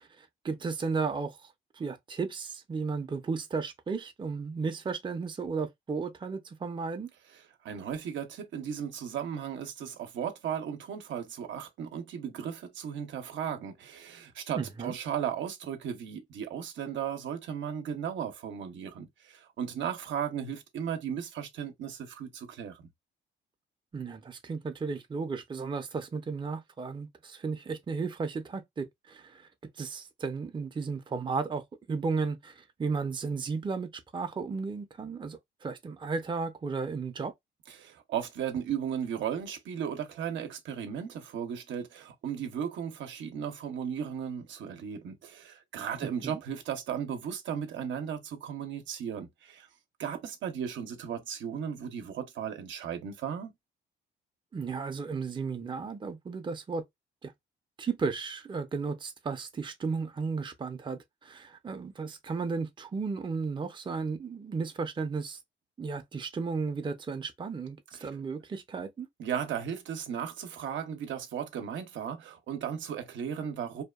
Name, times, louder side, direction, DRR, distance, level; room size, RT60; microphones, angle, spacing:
voice 1, 0.0-1.4 1.7-7.1 14.5-15.0 23.9-29.5 29.8-37.3 46.2-46.4 54.5-56.8 57.2-57.3 57.8-65.4 65.8-69.1, right 4 dB, 25° right, 0.5 m, -34 dB
voice 2, 7.6-22.9 37.7-49.7 50.0-53.5 68.0-68.1 69.2-73.8, right 8 dB, 70° right, 0.7 m, -36 dB
2.8 x 2.2 x 2.2 m
cardioid pair, 90°, 20 cm